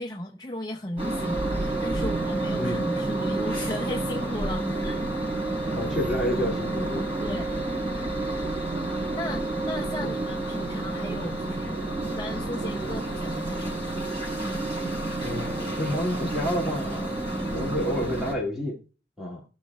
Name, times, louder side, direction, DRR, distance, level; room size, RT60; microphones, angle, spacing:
voice 1, 0.0-5.1 7.2-7.4 9.1-13.9, left 1 dB, 25° left, 0.6 m, -36 dB
sound 1, 1.0-18.3, right 2 dB, 35° right, 4.2 m, -29 dB
voice 2, 5.7-7.4 10.0-10.1 15.2-18.8 19.2-19.4, equal, 5° right, 2.2 m, -30 dB
18.0 x 6.3 x 2.3 m
head